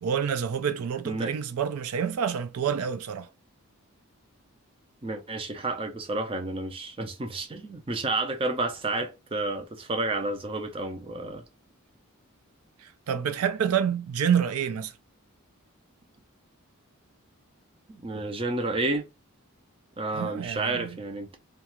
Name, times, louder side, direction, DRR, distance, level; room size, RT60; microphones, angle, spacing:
voice 1, 0.0-3.3 12.8-14.9 20.1-21.0, right 8 dB, 85° right, 0.4 m, -28 dB
voice 2, 5.0-11.4 17.9-19.0 20.0-21.4, right 2 dB, 25° right, 0.5 m, -30 dB
2.4 x 2.4 x 2.8 m
head